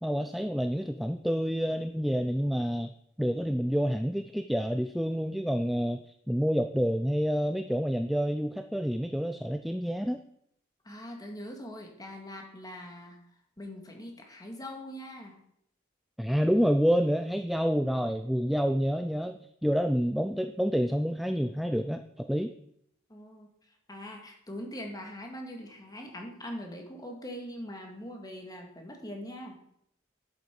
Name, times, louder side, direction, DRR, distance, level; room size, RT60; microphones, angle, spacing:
voice 1, 0.0-2.9 3.2-10.2 16.2-22.5, equal, ahead, 8 dB, 0.4 m, -28 dB
voice 2, 10.8-13.2 13.6-15.4 23.1-29.6, equal, 20° left, 2 dB, 2.1 m, -42 dB
11.0 x 7.8 x 5.3 m, 0.73 s
head